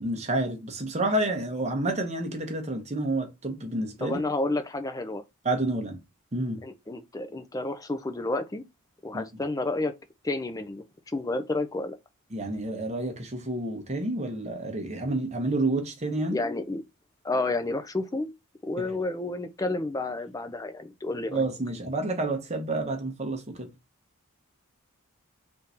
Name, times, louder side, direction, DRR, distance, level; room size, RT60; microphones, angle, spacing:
voice 1, 0.0-4.2 5.4-6.0 6.3-6.6 9.1-9.2 12.3-16.4 21.3-23.7, right 2 dB, 30° right, 0.9 m, -29 dB
voice 2, 4.0-5.2 6.6-8.6 9.0-9.9 10.2-10.8 11.1-12.0 16.3-16.8 17.2-18.3 18.6-21.4, left 2 dB, 15° left, 0.4 m, -30 dB
3.6 x 2.6 x 4.2 m
head